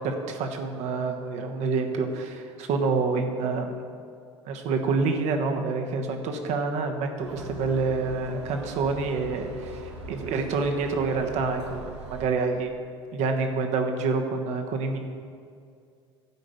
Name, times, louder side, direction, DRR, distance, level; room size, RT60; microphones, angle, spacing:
voice 1, 0.0-3.8 4.4-9.8 10.1-11.8 12.1-12.8 13.1-15.0, right 4 dB, 55° right, 4 dB, 1.2 m, -27 dB
sound 1, 7.2-12.3, right 1 dB, 85° right, 1.0 m, -40 dB
12.0 x 5.1 x 7.0 m, 2.3 s
figure-of-eight pair, 65°, 14 cm